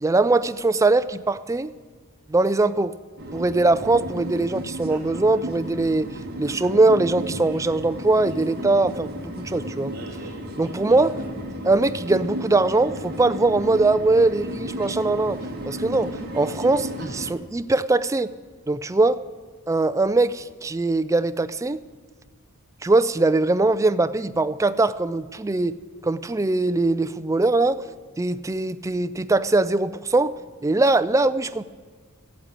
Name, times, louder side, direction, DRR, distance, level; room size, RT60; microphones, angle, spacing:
voice 1, 0.0-1.7 2.3-2.9 3.3-6.1 6.4-9.9 10.6-11.2 11.6-18.3 18.7-19.2 19.7-21.8 22.8-25.7 26.0-27.8 28.2-30.3 30.6-31.6, right 2 dB, 15° right, 12 dB, 0.3 m, -21 dB
sound 1, 3.2-17.3, equal, 45° right, 2.0 m, -34 dB
14.0 x 8.6 x 8.9 m, 1.6 s
head